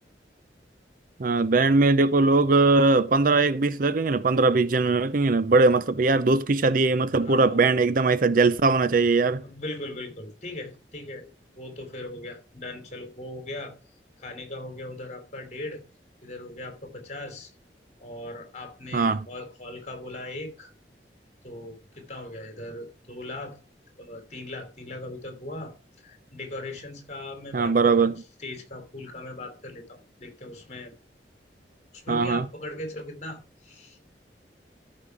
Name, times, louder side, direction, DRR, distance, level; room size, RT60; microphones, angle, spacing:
voice 1, 1.2-9.4 18.9-19.2 27.5-28.1 32.1-32.5, right 3 dB, 50° right, 0.6 m, -20 dB
voice 2, 7.2-7.8 9.4-11.3 11.6-13.8 14.2-15.8 16.2-17.5 18.0-20.7 21.4-23.6 24.0-30.9 31.9-34.0, left 1 dB, 40° left, 3.1 m, -39 dB
13.5 x 5.6 x 4.7 m
head